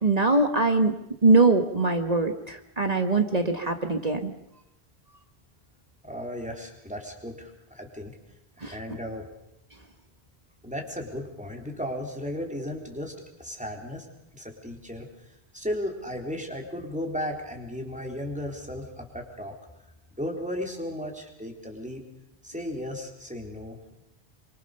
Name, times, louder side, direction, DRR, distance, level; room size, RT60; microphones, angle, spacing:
voice 1, 0.0-0.9 1.2-4.3 8.6-8.7, right 3 dB, 40° right, 7 dB, 1.5 m, -22 dB
voice 2, 6.0-8.2 8.6-9.3 10.6-13.1 13.4-14.1 14.3-15.1 15.5-19.6 20.2-22.0 22.4-23.9, equal, 5° right, 1 dB, 4.0 m, -35 dB
24.5 x 24.0 x 6.8 m, 0.85 s
omnidirectional pair, 1.0 m